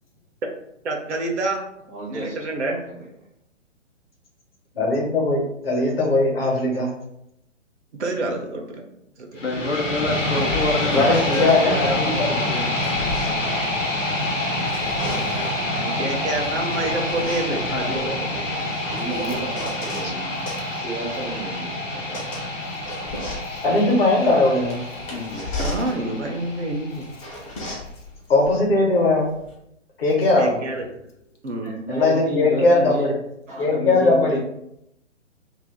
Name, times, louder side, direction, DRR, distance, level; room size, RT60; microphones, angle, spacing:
voice 1, 0.8-1.6 2.1-2.8 7.9-8.8 9.2-9.4 15.7-17.6 25.6-27.1 30.4-30.8 31.4-31.7, right 2 dB, 65° right, 2 dB, 0.6 m, -27 dB
voice 2, 1.9-2.3 2.9-3.1 15.5-16.0 17.6-20.4 20.7-22.5 25.3-25.6 31.6-33.1 33.5-34.4, right 1 dB, 15° right, -6 dB, 0.5 m, -32 dB
voice 3, 4.7-6.9 10.9-12.3 23.5-24.8 28.3-29.3 30.0-30.6 31.9-32.9 33.6-34.4, left 2 dB, 50° left, -1 dB, 1.0 m, -19 dB
sound 1, 9.3-27.4, left 1 dB, 85° left, 1.0 m, -27 dB
voice 4, 9.4-12.2 12.5-12.8 17.7-18.0 25.1-25.4, left 2 dB, 70° left, 1 dB, 0.7 m, -27 dB
sound 2, 10.2-11.6 12.4-14.2 14.5-15.7 16.4-20.1 20.5-29.5, left 1 dB, 25° left, 0.7 m, -35 dB
2.6 x 2.4 x 3.4 m, 0.78 s
figure-of-eight pair, 130°, 37 cm